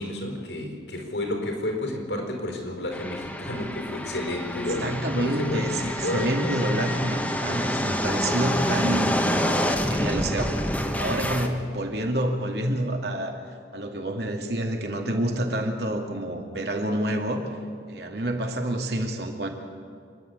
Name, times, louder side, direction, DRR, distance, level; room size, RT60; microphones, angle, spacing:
voice 1, 0.0-6.3, left 1 dB, 80° left, 2 dB, 4.5 m, -31 dB
sound 1, 2.9-11.5, equal, 10° left, 1.2 m, -27 dB
voice 2, 4.8-10.5 11.0-13.4 13.7-17.5 17.9-19.5, right 1 dB, 65° right, 3 dB, 2.5 m, -28 dB
27.0 x 11.0 x 9.5 m, 2.2 s
head